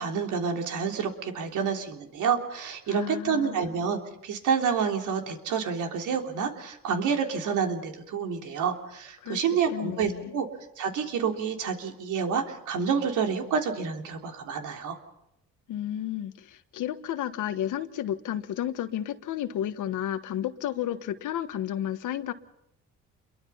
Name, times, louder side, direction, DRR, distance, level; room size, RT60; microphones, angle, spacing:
voice 1, 0.0-10.5 10.8-15.0, right 6 dB, 85° right, 3 dB, 3.4 m, -28 dB
voice 2, 2.9-3.7 9.2-9.4 9.7-10.3 15.7-22.3, left 11 dB, 80° left, 11 dB, 1.4 m, -32 dB
28.0 x 22.5 x 5.7 m, 0.82 s
cardioid pair, 90°, 30 cm